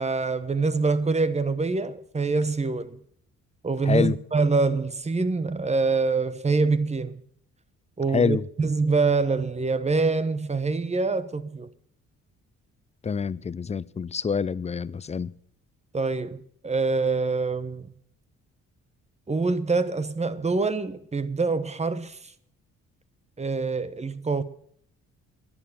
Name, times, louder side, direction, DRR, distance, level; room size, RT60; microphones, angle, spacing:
voice 1, 0.0-3.0 3.6-7.2 8.0-11.7 15.9-17.9 19.3-22.2 23.4-24.4, right 4 dB, 20° right, 1.0 m, -25 dB
voice 2, 3.9-4.2 8.1-8.4 13.0-15.3, left 5 dB, 20° left, 0.5 m, -26 dB
11.0 x 10.0 x 8.7 m
cardioid pair, 90°, 30 cm